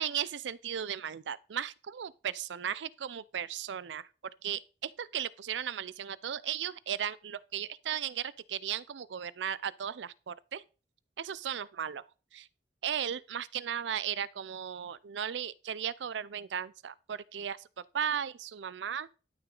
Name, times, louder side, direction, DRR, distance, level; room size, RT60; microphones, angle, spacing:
voice 1, 0.0-4.1 4.4-10.6 11.2-12.0 12.3-12.5 12.8-17.6 17.9-19.1, right 9 dB, 85° right, 0.4 m, -36 dB
12.0 x 5.9 x 3.9 m
head